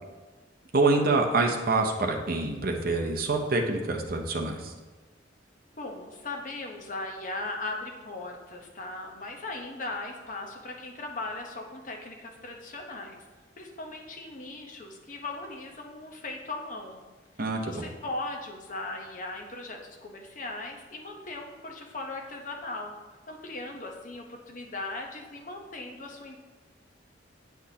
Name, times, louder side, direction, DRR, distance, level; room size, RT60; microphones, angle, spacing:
voice 1, 0.7-4.7 17.4-17.8, right 3 dB, 50° right, 2 dB, 0.7 m, -26 dB
voice 2, 5.7-13.2 13.6-17.0 17.6-22.9 23.3-26.4, left 2 dB, 45° left, 2 dB, 0.8 m, -38 dB
8.5 x 5.9 x 2.8 m, 1.3 s
head